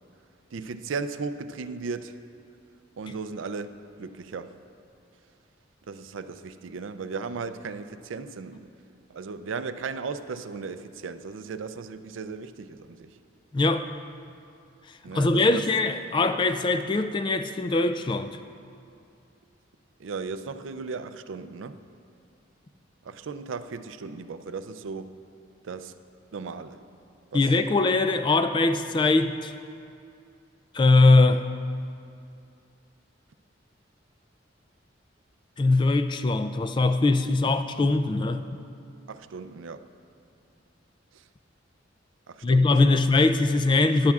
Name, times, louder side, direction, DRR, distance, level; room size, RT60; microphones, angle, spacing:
voice 1, 0.5-2.2 3.0-3.7 4.0-4.6 5.9-8.7 9.1-13.1 15.0-15.6 20.0-21.8 23.0-25.1 25.6-25.9 26.3-26.8 27.3-27.9 39.1-39.9 42.3-43.0, right 4 dB, 80° right, 11 dB, 0.4 m, -36 dB
voice 2, 13.5-13.9 15.1-18.4 27.3-29.5 30.7-31.4 35.6-38.6 42.4-44.1, left 3 dB, 25° left, 9 dB, 0.3 m, -21 dB
15.5 x 10.5 x 2.4 m, 2.5 s
head